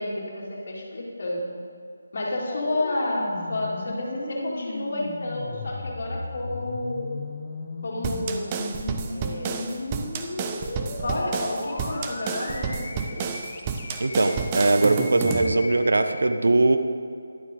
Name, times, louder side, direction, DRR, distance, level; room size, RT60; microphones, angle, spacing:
voice 1, 0.0-1.5 2.1-7.1 7.8-8.6 9.1-9.7 11.0-13.3, left 1 dB, 45° left, -3 dB, 2.6 m, -30 dB
sound 1, 2.5-16.2, left 2 dB, 30° left, 1.3 m, -36 dB
sound 2, 8.0-15.5, right 6 dB, 20° right, 0.6 m, -30 dB
voice 2, 14.0-16.8, right 2 dB, 60° right, 7 dB, 0.8 m, -20 dB
12.5 x 11.5 x 3.8 m, 2.4 s
figure-of-eight pair, 155°, 0 cm